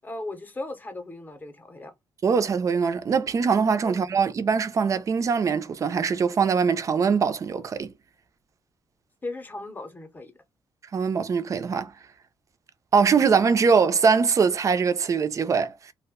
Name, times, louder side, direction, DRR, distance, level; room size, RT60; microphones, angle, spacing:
voice 1, 0.0-1.9 3.8-4.0 9.2-10.3, left 2 dB, 20° left, 0.7 m, -37 dB
voice 2, 2.2-7.9 10.9-11.9 12.9-15.9, right 5 dB, 40° right, 0.4 m, -22 dB
2.4 x 2.1 x 3.5 m
cardioid pair, 135°, 9 cm